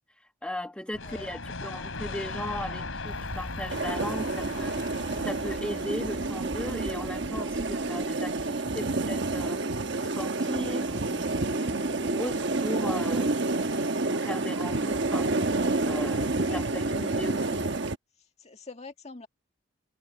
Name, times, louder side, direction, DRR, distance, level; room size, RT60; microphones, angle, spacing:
voice 1, 0.4-13.3 13.6-15.4 15.9-17.6, left 1 dB, 5° left, 1.2 m, -38 dB
sound 1, 0.9-6.6, left 3 dB, 80° left, 3.6 m, -38 dB
Bicycle, 3.1-8.5, equal, 25° right, 5.2 m, -44 dB
sound 2, 3.7-18.0, right 2 dB, 60° right, 1.2 m, -29 dB
voice 2, 18.4-19.3, left 3 dB, 35° left, 1.9 m, -44 dB
head